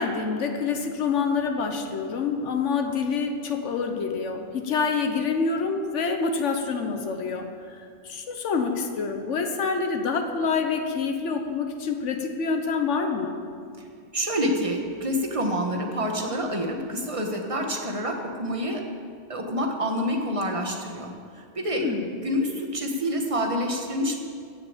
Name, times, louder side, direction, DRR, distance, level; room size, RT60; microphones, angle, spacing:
voice 1, 0.0-7.8 8.0-13.3 21.7-22.1, left 5 dB, 80° left, 4 dB, 1.4 m, -27 dB
voice 2, 14.1-18.9 19.3-24.2, equal, 30° right, 3 dB, 1.4 m, -27 dB
16.0 x 6.9 x 7.3 m, 2.2 s
omnidirectional pair, 1.2 m